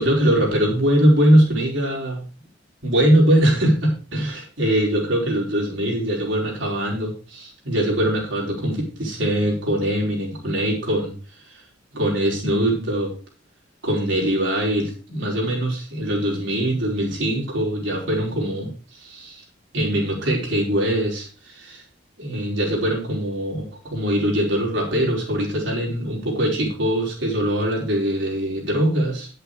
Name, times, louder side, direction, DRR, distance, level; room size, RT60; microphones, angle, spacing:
voice 1, 0.0-2.2 2.8-11.1 11.5-11.6 11.9-13.1 13.8-19.4 19.7-21.8 22.2-29.3, right 1 dB, 75° right, -2 dB, 4.6 m, -22 dB
9.4 x 7.9 x 4.9 m, 0.37 s
head